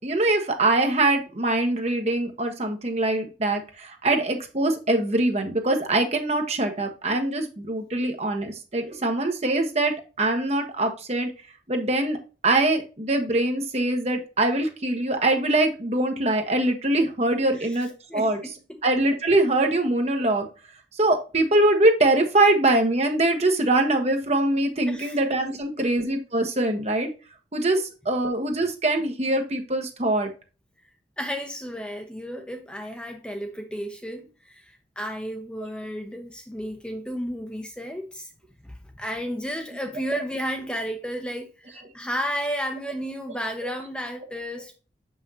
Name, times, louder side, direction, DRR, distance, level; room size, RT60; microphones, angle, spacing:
voice 1, 0.0-11.3 11.7-12.2 12.4-18.4 18.8-20.5 21.0-27.1 27.5-30.3, right 2 dB, 35° right, 1.1 m, -23 dB
voice 2, 17.5-18.8 24.9-25.2 25.8-25.9 31.2-38.3 38.6-44.7, equal, 5° left, 0.5 m, -33 dB
6.1 x 5.7 x 2.8 m
head